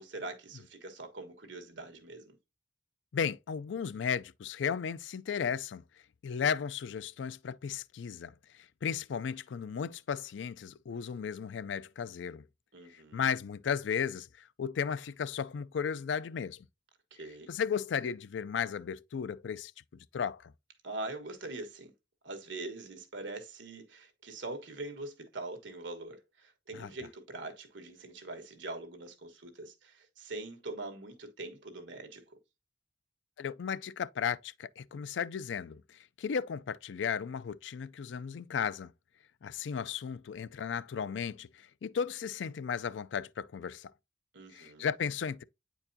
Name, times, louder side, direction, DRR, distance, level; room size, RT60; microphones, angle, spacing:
voice 1, 0.0-2.4 12.7-13.2 17.1-17.5 20.8-21.9 22.2-32.4 44.3-44.9, right 2 dB, 85° right, 1.4 m, -43 dB
voice 2, 3.1-5.8 6.2-12.4 12.9-16.7 17.5-20.5 26.7-26.9 33.4-38.9 39.4-43.9 44.5-45.4, left 7 dB, 80° left, 0.4 m, -35 dB
8.7 x 4.6 x 2.7 m
head